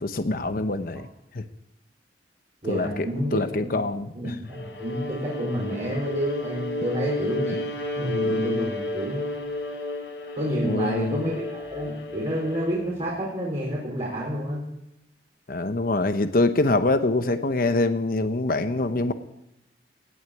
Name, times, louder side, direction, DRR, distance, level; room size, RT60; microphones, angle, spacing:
voice 1, 0.0-1.1 1.3-1.4 2.7-3.1 3.3-4.3 10.6-11.2 15.5-19.1, left 2 dB, 55° left, 10 dB, 0.8 m, -24 dB
voice 2, 2.6-3.7 4.1-7.5 8.0-9.2 10.3-14.6, equal, 40° right, -6 dB, 4.6 m, -29 dB
Bowed string instrument, 4.5-12.9, left 1 dB, 80° left, 6.6 m, -32 dB
17.5 x 6.5 x 9.1 m, 0.84 s
head